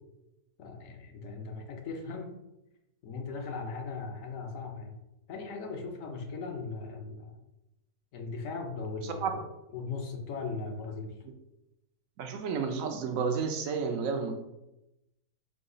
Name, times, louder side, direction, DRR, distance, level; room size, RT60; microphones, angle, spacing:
voice 1, 0.6-2.4 3.0-5.0 5.3-7.4 8.1-9.4 9.7-11.1, left 4 dB, 65° left, 4 dB, 1.0 m, -38 dB
voice 2, 12.2-14.4, right 5 dB, 70° right, 5 dB, 0.9 m, -31 dB
4.8 x 2.3 x 3.8 m, 0.90 s
omnidirectional pair, 1.6 m